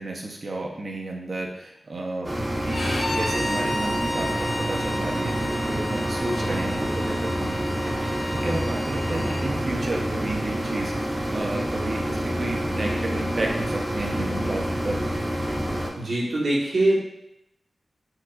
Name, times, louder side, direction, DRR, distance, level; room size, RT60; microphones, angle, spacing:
voice 1, 0.0-2.3 2.6-7.6 8.0-15.0, right 2 dB, 55° right, 0 dB, 0.6 m, -32 dB
sound 1, 2.2-15.9, equal, 15° right, 0.8 m, -27 dB
Bowed string instrument, 2.7-9.5, left 1 dB, 55° left, 0.4 m, -33 dB
voice 2, 16.0-17.0, right 1 dB, 75° right, -6 dB, 1.0 m, -22 dB
4.7 x 2.3 x 2.3 m, 0.81 s
cardioid pair, 45°, 0 cm